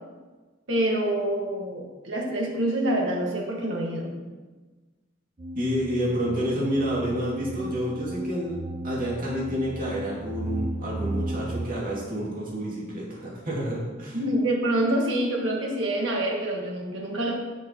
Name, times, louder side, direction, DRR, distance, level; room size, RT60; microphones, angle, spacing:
voice 1, 0.7-4.1 14.1-17.3, right 1 dB, 75° right, -1 dB, 1.8 m, -26 dB
sound 1, 5.4-11.7, right 1 dB, 30° right, 0.4 m, -34 dB
voice 2, 5.5-8.6 8.8-14.2, equal, 45° right, -5 dB, 2.5 m, -29 dB
10.5 x 6.4 x 3.1 m, 1.3 s
head